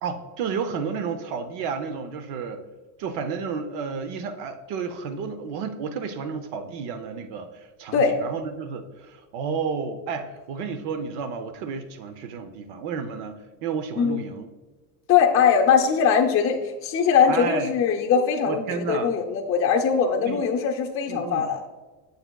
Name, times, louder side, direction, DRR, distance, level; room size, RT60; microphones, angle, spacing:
voice 1, 0.0-2.6 3.0-14.5 17.3-17.7 18.5-19.1 20.2-20.4 21.1-21.5, right 5 dB, 65° right, 9 dB, 0.7 m, -31 dB
voice 2, 15.1-21.6, left 6 dB, 30° left, 1 dB, 0.6 m, -21 dB
7.9 x 6.7 x 2.3 m, 1.3 s
cardioid pair, 135°, 44 cm